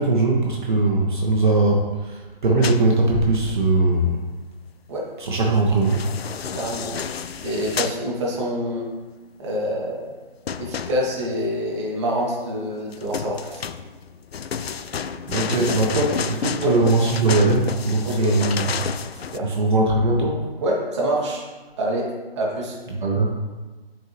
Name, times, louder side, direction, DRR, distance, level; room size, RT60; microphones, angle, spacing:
voice 1, 0.0-4.2 5.2-6.1 14.6-14.9 15.3-18.7 19.4-20.4 22.9-23.3, right 2 dB, 50° right, -1 dB, 1.1 m, -20 dB
sound 1, 2.6-2.8 5.6-8.0 10.5-11.3 12.9-19.4, left 7 dB, 80° left, 0.5 m, -30 dB
voice 2, 6.6-7.0 7.4-8.9 9.4-10.1 10.6-13.6 16.5-16.8 18.0-18.4 19.1-19.5 20.6-21.4 21.8-22.1 22.4-22.8, equal, 30° right, -3 dB, 1.4 m, -26 dB
8.4 x 4.6 x 3.1 m, 1.3 s
figure-of-eight pair, 155°, 30 cm